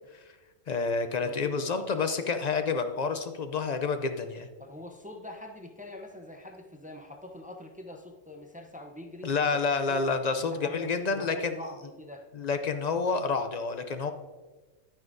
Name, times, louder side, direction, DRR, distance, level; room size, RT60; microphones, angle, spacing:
voice 1, 0.7-4.5 9.2-11.5 12.3-14.1, left 4 dB, 60° left, 8 dB, 0.4 m, -29 dB
voice 2, 1.2-1.7 4.6-10.1 10.4-12.3, left 1 dB, 10° right, 3 dB, 0.4 m, -44 dB
10.5 x 9.3 x 2.6 m, 1.2 s
omnidirectional pair, 1.3 m